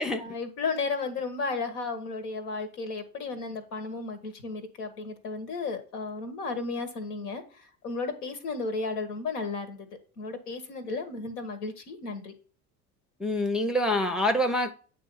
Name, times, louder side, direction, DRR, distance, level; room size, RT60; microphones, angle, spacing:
voice 1, 0.2-9.9 10.2-12.3, left 4 dB, 75° left, 1.4 m, -34 dB
voice 2, 13.2-14.7, left 1 dB, ahead, 0.6 m, -26 dB
8.5 x 2.8 x 5.4 m
hypercardioid pair, 70°, 47 cm